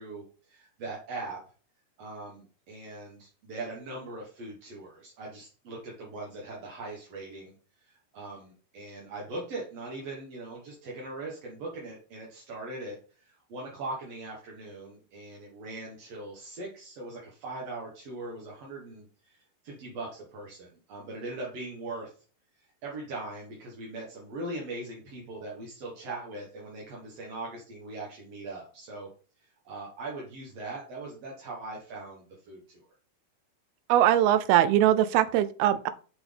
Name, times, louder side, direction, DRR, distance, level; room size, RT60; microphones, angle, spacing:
voice 1, 0.0-1.4 2.0-7.5 7.8-22.1 22.8-29.1 29.6-32.8, right 2 dB, 55° right, -3 dB, 2.1 m, -40 dB
voice 2, 33.9-35.9, right 12 dB, 85° right, 13 dB, 2.5 m, -21 dB
5.9 x 5.9 x 3.5 m, 0.39 s
omnidirectional pair, 4.5 m